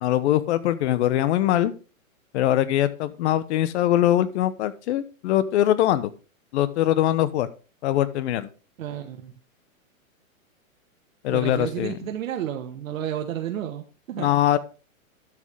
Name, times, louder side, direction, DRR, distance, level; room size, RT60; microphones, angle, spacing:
voice 1, 0.0-1.7 2.3-6.1 6.5-7.5 7.8-8.5 11.2-11.9 14.2-14.6, left 12 dB, 50° left, 15 dB, 1.0 m, -22 dB
voice 2, 8.8-9.3 11.3-14.3, right 10 dB, 70° right, 4 dB, 1.3 m, -31 dB
12.0 x 6.4 x 3.5 m, 0.33 s
hypercardioid pair, 135°, 42 cm